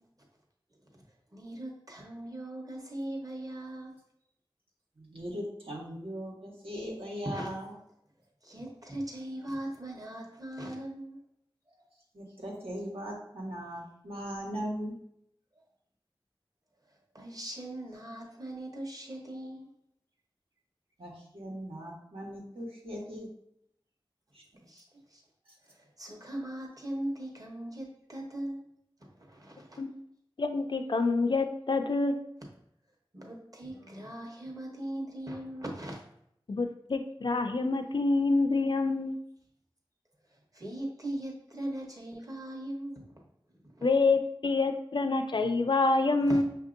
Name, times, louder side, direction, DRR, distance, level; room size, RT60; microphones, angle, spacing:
voice 1, 1.3-4.0 7.2-7.5 8.4-11.2 11.7-11.8 17.1-19.7 24.6-24.8 25.1-25.2 25.6-28.6 29.0-29.8 33.1-36.0 40.5-43.1 43.5-43.9 46.3-46.4, right 1 dB, 40° right, 0 dB, 1.0 m, -39 dB
voice 2, 5.0-7.7 12.1-14.9 21.0-23.3 24.3-24.4, equal, 80° right, -4 dB, 1.2 m, -39 dB
voice 3, 30.4-32.1 36.5-39.2 43.8-46.4, left 3 dB, 60° left, 7 dB, 0.4 m, -27 dB
5.8 x 2.7 x 2.5 m, 0.74 s
wide cardioid pair, 40°, 9 cm